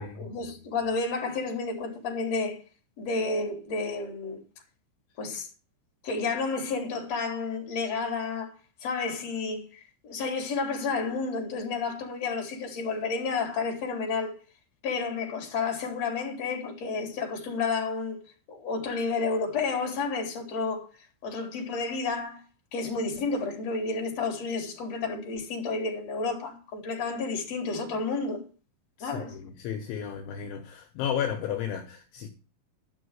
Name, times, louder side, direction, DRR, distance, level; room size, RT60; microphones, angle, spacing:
voice 1, 0.0-2.6 3.0-4.4 5.2-5.5 6.0-8.5 8.8-14.3 14.8-18.2 18.5-20.9 21.2-22.4 22.7-28.4 29.0-29.4, left 4 dB, 35° left, 4.0 m, -31 dB
voice 2, 29.0-32.3, left 8 dB, 70° left, 3.4 m, -33 dB
13.5 x 6.1 x 8.0 m
omnidirectional pair, 6.0 m